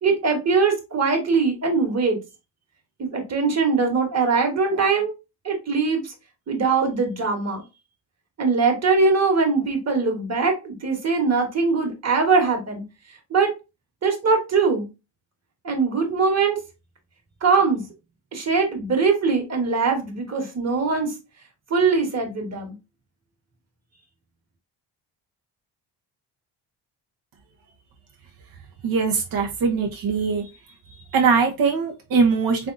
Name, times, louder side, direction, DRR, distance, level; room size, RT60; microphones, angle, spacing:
voice 1, 0.0-2.2 3.0-5.1 5.4-6.1 6.5-7.6 8.4-12.8 13.3-13.5 14.0-14.9 15.6-16.6 17.4-17.8 18.3-21.1 21.7-22.7, right 4 dB, 40° right, 4 dB, 1.5 m, -21 dB
voice 2, 28.8-30.4 31.1-32.7, right 5 dB, 55° right, 1 dB, 0.9 m, -21 dB
3.7 x 3.5 x 2.6 m, 0.26 s
cardioid pair, 80°, 41 cm